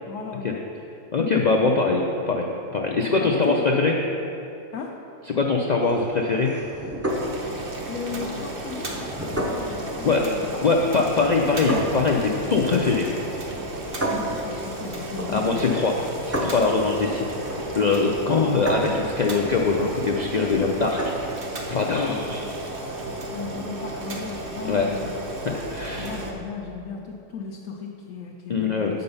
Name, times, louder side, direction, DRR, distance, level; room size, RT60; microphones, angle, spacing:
voice 1, 0.1-0.7 3.0-3.7 4.7-5.0 7.9-11.5 14.1-15.7 18.3-18.4 21.8-22.7 23.3-25.1 26.0-29.0, left 5 dB, 85° left, -1 dB, 1.1 m, -36 dB
voice 2, 1.1-4.0 5.3-6.6 10.0-10.2 10.6-13.1 15.3-15.9 16.2-17.2 17.8-21.0 21.7-22.5 24.7-24.9 25.5-26.1 28.5-29.0, left 4 dB, 60° left, 0 dB, 0.4 m, -22 dB
sound 1, 5.8-21.4, right 1 dB, 15° right, 0.6 m, -33 dB
Boiling, 7.1-26.3, right 2 dB, 45° right, 1.1 m, -34 dB
7.8 x 5.3 x 5.4 m, 2.8 s
omnidirectional pair, 1.3 m